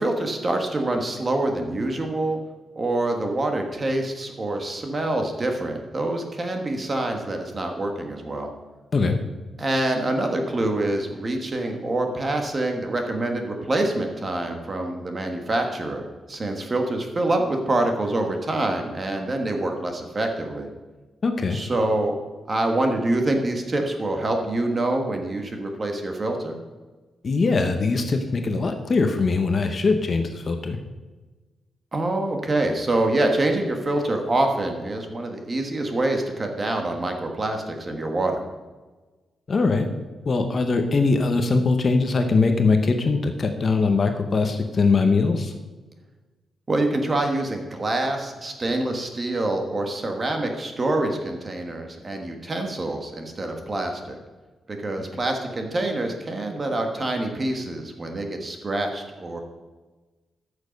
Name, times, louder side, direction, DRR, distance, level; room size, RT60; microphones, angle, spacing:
voice 1, 0.0-2.4 2.7-8.5 9.6-20.7 21.5-22.1 22.5-26.6 31.9-38.4 46.7-54.2 54.7-59.4, right 2 dB, 25° right, 4 dB, 1.3 m, -26 dB
voice 2, 21.2-21.6 27.2-30.8 39.5-39.9 40.3-45.5, left 4 dB, 35° left, 6 dB, 0.8 m, -21 dB
13.5 x 6.5 x 5.2 m, 1.3 s
wide cardioid pair, 165°, 0 cm